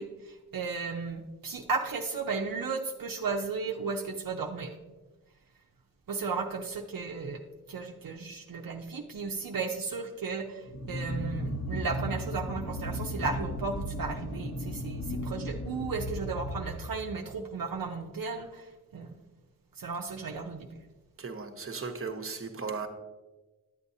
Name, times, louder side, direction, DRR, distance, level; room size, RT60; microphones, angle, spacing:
voice 1, 0.0-4.7 6.1-7.4 7.7-18.6 18.9-19.2 19.8-20.7, right 4 dB, 70° right, 2 dB, 0.7 m, -35 dB
sound 1, 10.7-17.2, equal, 50° left, 1.1 m, -35 dB
voice 2, 21.2-22.9, right 5 dB, 40° right, 5 dB, 0.9 m, -36 dB
10.5 x 8.1 x 2.7 m, 1.2 s
wide cardioid pair, 70°, 35 cm